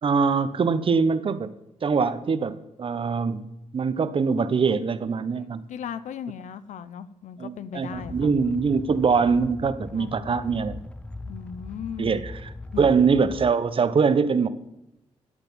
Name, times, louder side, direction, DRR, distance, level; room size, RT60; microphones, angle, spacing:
voice 1, 0.0-1.5 1.8-3.5 3.7-5.7 7.4-10.8 12.0-14.5, right 5 dB, 45° right, 13 dB, 1.0 m, -23 dB
voice 2, 5.7-8.3 9.9-10.1 11.3-12.3 12.7-12.8, left 8 dB, 80° left, 14 dB, 0.8 m, -37 dB
sound 1, 7.9-13.5, left 2 dB, 10° left, 0.6 m, -39 dB
13.5 x 8.0 x 7.4 m, 0.89 s
cardioid pair, 100°, 12 cm